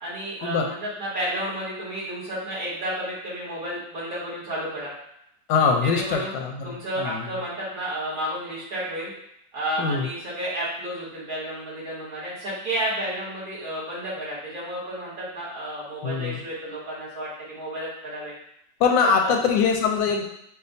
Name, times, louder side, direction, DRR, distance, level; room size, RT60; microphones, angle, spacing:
voice 1, 0.0-4.9 5.8-6.3 6.6-9.1 9.5-18.3 19.0-19.3, right 1 dB, 55° right, -8 dB, 1.8 m, -31 dB
voice 2, 5.5-7.3 9.8-10.1 16.0-16.4 18.8-20.2, left 5 dB, 90° left, 2 dB, 1.3 m, -23 dB
6.0 x 2.1 x 2.6 m, 0.77 s
omnidirectional pair, 1.9 m